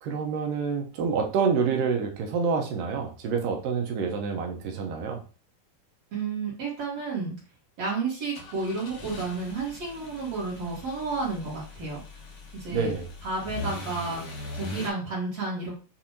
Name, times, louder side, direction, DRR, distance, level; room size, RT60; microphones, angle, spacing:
voice 1, 0.0-5.2 12.7-13.1, right 5 dB, 75° right, 3 dB, 2.4 m, -27 dB
voice 2, 6.1-7.3 7.8-12.0 12.6-12.9 13.2-14.2 14.5-15.8, right 3 dB, 55° right, -5 dB, 2.3 m, -31 dB
sound 1, 8.3-14.9, left 2 dB, 70° left, 1.5 m, -41 dB
7.2 x 2.6 x 2.8 m, 0.35 s
omnidirectional pair, 4.0 m